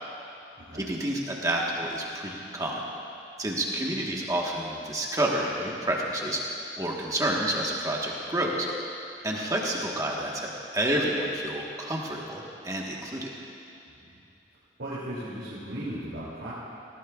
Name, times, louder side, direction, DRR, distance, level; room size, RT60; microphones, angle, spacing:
voice 1, 0.8-2.8 3.4-6.4 6.8-8.7 9.2-13.3, right 1 dB, 20° right, -2 dB, 1.3 m, -29 dB
voice 2, 13.9-14.2 14.8-16.5, right 1 dB, 85° right, -9 dB, 2.8 m, -37 dB
18.5 x 17.5 x 2.4 m, 2.7 s
head